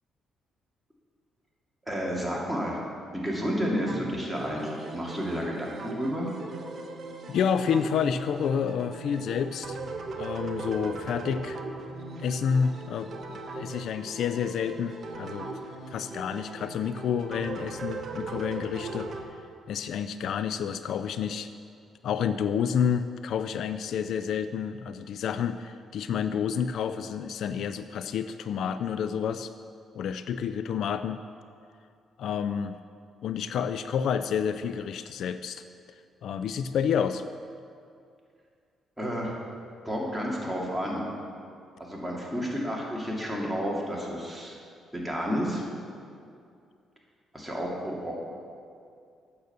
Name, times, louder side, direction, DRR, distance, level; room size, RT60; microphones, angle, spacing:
voice 1, 1.9-2.8 3.1-6.3 39.0-39.4 39.8-41.0 41.8-44.6 44.9-45.6 47.3-48.1, equal, 5° right, -4 dB, 2.3 m, -31 dB
sound 1, 3.9-19.2, right 3 dB, 50° right, 1.1 m, -39 dB
voice 2, 7.3-9.8 10.2-11.6 12.2-15.5 15.9-19.1 19.7-21.5 22.0-29.5 29.9-31.2 32.2-32.8 33.2-35.6 36.2-37.2, left 7 dB, 70° left, 11 dB, 0.3 m, -29 dB
8.8 x 6.7 x 6.7 m, 2.4 s
cardioid pair, 90°, 0 cm